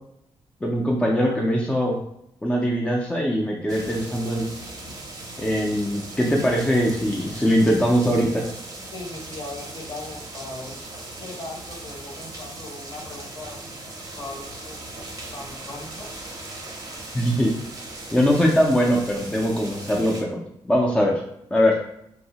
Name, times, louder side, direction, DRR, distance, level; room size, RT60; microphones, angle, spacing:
voice 1, 0.6-2.0 2.4-4.5 5.4-8.4 17.1-17.5 18.1-20.4 20.7-21.1 21.5-21.8, equal, 10° left, -2 dB, 0.4 m, -21 dB
sound 1, 3.7-20.2, right 2 dB, 35° right, 0.6 m, -38 dB
voice 2, 8.9-10.8 11.2-13.6 14.1-14.8 15.3-16.1, left 2 dB, 40° left, 0 dB, 0.7 m, -38 dB
2.7 x 2.0 x 2.8 m, 0.77 s
cardioid pair, 105°, 10 cm